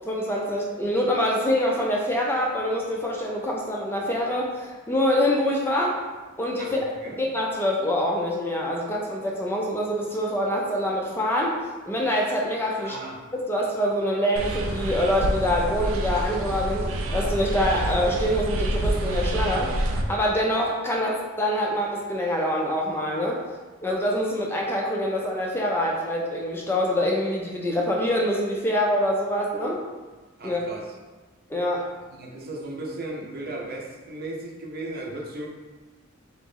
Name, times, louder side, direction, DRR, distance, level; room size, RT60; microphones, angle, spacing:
voice 1, 0.1-6.0 6.4-6.8 7.2-11.6 11.9-13.0 13.5-23.4 23.8-29.8 30.4-30.6 31.5-31.9, equal, 10° left, -2 dB, 0.4 m, -25 dB
voice 2, 6.6-7.2 12.8-13.2 30.4-30.8 32.1-35.5, right 2 dB, 50° right, -2 dB, 0.7 m, -36 dB
sound 1, 14.4-20.0, right 1 dB, 90° right, 0.5 m, -27 dB
3.9 x 3.0 x 3.6 m, 1.2 s
head